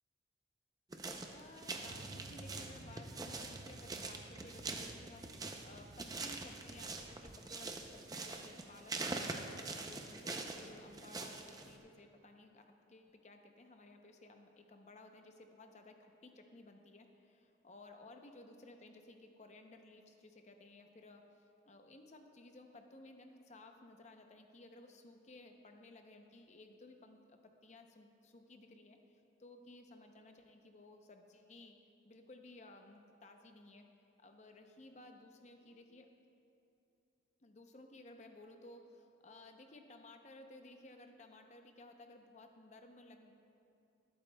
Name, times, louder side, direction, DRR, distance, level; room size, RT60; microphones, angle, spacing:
sound 1, 0.9-11.8, right 3 dB, 20° right, 0.5 m, -44 dB
voice 1, 1.3-5.3 5.6-21.2 21.7-31.8 32.0-33.9 34.2-36.1 37.4-43.3, left 2 dB, 35° left, 5 dB, 0.6 m, -57 dB
Motorcycle / Traffic noise roadway noise, 1.8-7.1, right 1 dB, 75° right, 0.8 m, -54 dB
19.0 x 8.7 x 2.2 m, 2.7 s
head